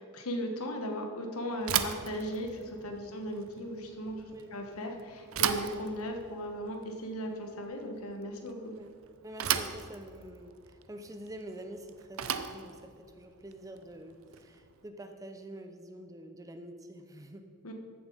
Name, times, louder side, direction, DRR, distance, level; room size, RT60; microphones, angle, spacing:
voice 1, 0.0-4.2 4.5-8.7 17.6-17.7, equal, 75° left, 4 dB, 1.3 m, -37 dB
Bicycle / Thump thud, 1.6-14.7, right 9 dB, 65° right, 0.5 m, -37 dB
voice 2, 9.2-17.4, right 1 dB, 15° right, 6 dB, 0.5 m, -47 dB
14.5 x 7.0 x 4.0 m, 2.1 s
head